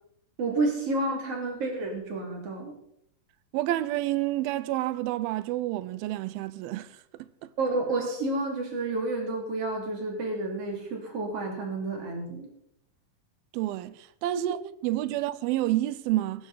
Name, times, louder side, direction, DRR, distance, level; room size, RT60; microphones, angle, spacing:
voice 1, 0.4-2.7 7.6-12.5 14.3-14.5, right 2 dB, 45° right, 3.5 m, -30 dB
voice 2, 3.5-7.5 13.5-16.5, right 15 dB, 90° right, 2.5 m, -29 dB
19.5 x 10.0 x 4.0 m
omnidirectional pair, 4.2 m